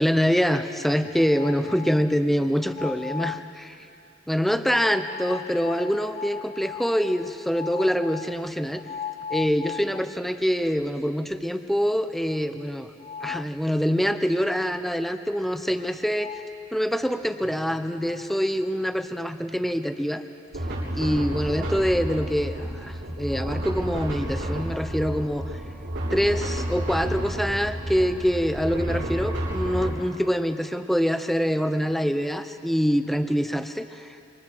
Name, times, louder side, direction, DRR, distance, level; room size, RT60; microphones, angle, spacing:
voice 1, 0.0-3.8 4.3-8.8 9.3-12.9 13.2-16.3 16.7-20.2 20.9-25.5 26.1-34.2, equal, ahead, 9 dB, 0.7 m, -25 dB
sound 1, 1.0-2.1 2.6-3.5 4.7-10.4 10.8-10.9 11.3-11.4 13.0-13.6 15.8-15.9 16.1-16.5, left 8 dB, 30° left, 0.4 m, -37 dB
sound 2, 20.5-29.9, right 1 dB, 80° right, 7.0 m, -30 dB
27.5 x 25.0 x 4.6 m, 2.7 s
head